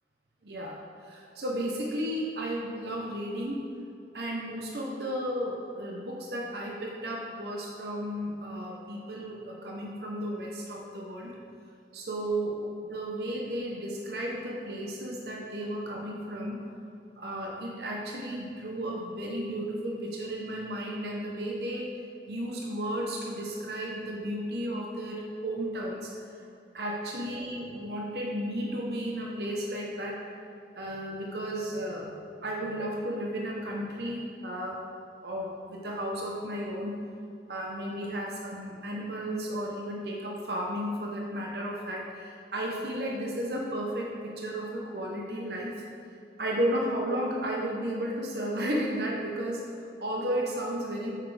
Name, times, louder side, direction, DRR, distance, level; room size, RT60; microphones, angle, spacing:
voice 1, 0.4-3.7 4.1-11.3 11.9-12.6 12.9-16.7 17.2-21.9 22.3-26.1 26.7-30.2 30.8-34.8 35.2-37.0 37.5-45.7 46.4-51.2, equal, 65° right, -2 dB, 0.9 m, -33 dB
8.6 x 6.1 x 3.3 m, 2.5 s
head